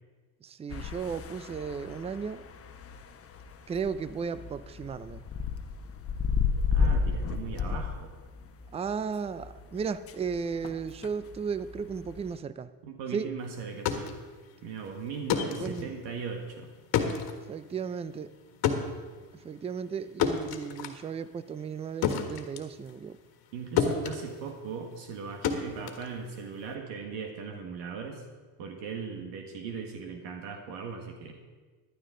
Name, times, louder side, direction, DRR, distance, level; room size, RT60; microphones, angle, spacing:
voice 1, 0.4-2.4 3.7-5.2 8.7-12.7 13.1-13.3 15.6-16.0 17.5-18.3 19.3-23.2, right 6 dB, 15° right, 15 dB, 0.4 m, -35 dB
sound 1, 0.7-12.3, left 5 dB, 35° left, 1.0 m, -33 dB
voice 2, 6.7-8.1 12.8-14.1 14.6-16.7 23.5-28.2 28.6-31.4, right 5 dB, 75° right, 3 dB, 1.7 m, -38 dB
sound 2, 13.6-23.5 23.8-26.7, left 7 dB, 60° left, 1.6 m, -32 dB
15.0 x 11.5 x 3.8 m, 1.4 s
supercardioid pair, 100°, 42 cm